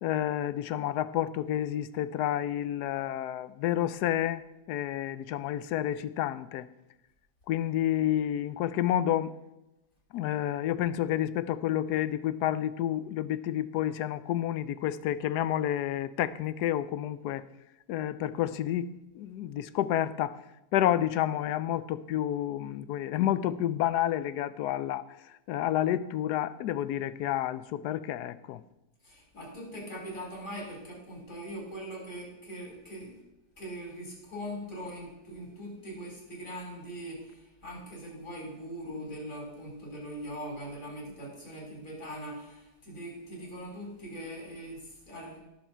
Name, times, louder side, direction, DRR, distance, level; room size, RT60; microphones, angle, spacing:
voice 1, 0.0-6.7 7.5-9.3 10.1-17.5 17.9-20.4 20.7-28.6, left 12 dB, 75° left, 1.1 m, -30 dB
voice 2, 29.0-33.1 33.6-45.4, equal, 50° left, 4.7 m, -41 dB
17.5 x 7.2 x 4.4 m
omnidirectional pair, 1.8 m